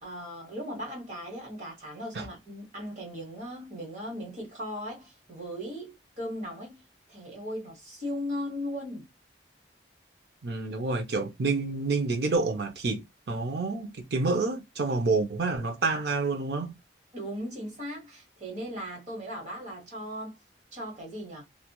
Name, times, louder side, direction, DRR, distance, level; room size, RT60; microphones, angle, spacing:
voice 1, 0.0-6.8 7.1-9.1 17.1-20.4 20.7-21.5, equal, 40° right, 1.2 m, -37 dB
voice 2, 10.4-16.8, right 3 dB, 65° right, 0.5 m, -28 dB
2.9 x 2.3 x 2.2 m
head